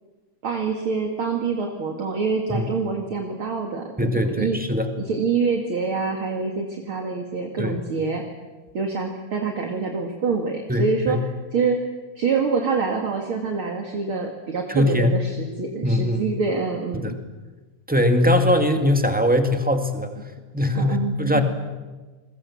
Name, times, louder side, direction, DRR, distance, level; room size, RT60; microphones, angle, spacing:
voice 1, 0.4-4.6 5.0-8.2 8.7-11.2 11.5-11.8 12.2-17.2 20.7-21.4, right 5 dB, 50° right, 2 dB, 2.8 m, -26 dB
voice 2, 4.0-4.9 7.6-7.8 10.7-11.2 14.7-15.1 15.8-16.3 16.9-17.1 17.9-20.1 20.5-21.4, left 1 dB, 5° right, 6 dB, 1.6 m, -21 dB
29.5 x 22.0 x 7.2 m, 1.3 s
omnidirectional pair, 3.3 m